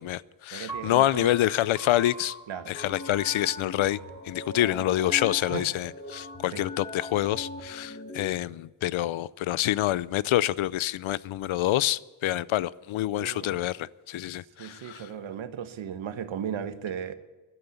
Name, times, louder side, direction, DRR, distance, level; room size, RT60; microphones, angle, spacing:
voice 1, 0.0-2.4 2.7-4.0 4.2-15.1, left 14 dB, 80° left, 0.6 m, -27 dB
voice 2, 0.5-1.3 2.5-2.7 5.5-5.6 6.5-6.6 13.2-13.6 14.6-17.1, right 8 dB, 80° right, 1.3 m, -36 dB
Piano, 0.7-6.9, right 3 dB, 10° right, 5.2 m, -45 dB
sound 1, 2.7-8.3, left 2 dB, 20° left, 2.0 m, -40 dB
13.5 x 12.0 x 8.4 m
wide cardioid pair, 140°, 47 cm